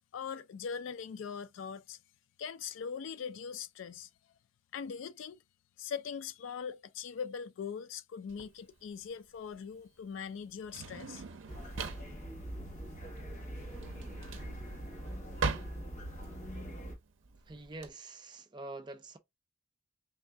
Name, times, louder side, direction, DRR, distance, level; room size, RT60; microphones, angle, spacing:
voice 1, 0.1-2.0 2.4-4.1 4.7-5.4 5.8-11.2, left 6 dB, 65° left, 0.3 m, -41 dB
Drawer open or close, 8.3-17.9, right 4 dB, 65° right, 0.6 m, -41 dB
sound 1, 11.5-17.0, equal, 40° left, 1.2 m, -43 dB
voice 2, 17.5-19.2, right 2 dB, 20° right, 0.5 m, -45 dB
3.6 x 2.5 x 3.2 m
head